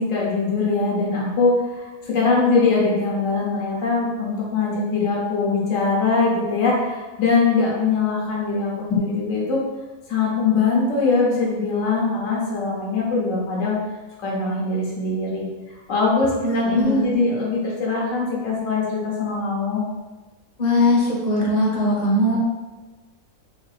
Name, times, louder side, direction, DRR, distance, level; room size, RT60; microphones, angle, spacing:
voice 1, 0.0-9.6 10.1-13.8 14.2-15.5 15.9-19.8, left 4 dB, 70° left, -4 dB, 1.3 m, -22 dB
voice 2, 16.4-17.1 20.6-22.4, left 1 dB, 35° left, -4 dB, 1.0 m, -20 dB
4.1 x 2.7 x 4.0 m, 1.2 s
omnidirectional pair, 1.4 m